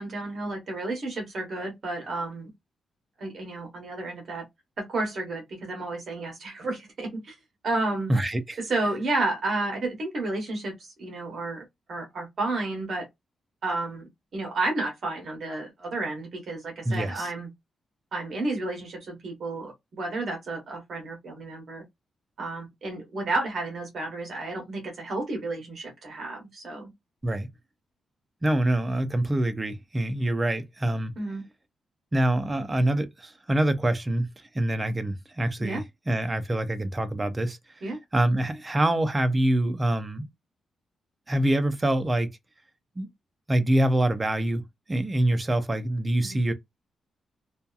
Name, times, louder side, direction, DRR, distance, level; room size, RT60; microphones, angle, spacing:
voice 1, 0.0-2.5 3.2-4.4 4.8-7.4 7.6-8.1 8.6-13.1 13.6-17.5 18.1-21.8 22.4-26.9 31.2-31.4 35.6-35.8 37.8-38.0 46.2-46.4, right 2 dB, 45° right, 1.0 m, -31 dB
voice 2, 8.1-8.6 16.8-17.3 27.2-27.5 28.4-31.1 32.1-34.3 34.5-35.8 36.1-37.6 38.1-40.3 41.3-42.3 43.0-43.1 43.5-44.6 44.9-46.5, right 1 dB, 15° right, 0.4 m, -25 dB
2.7 x 2.3 x 2.3 m
wide cardioid pair, 170°, 0 cm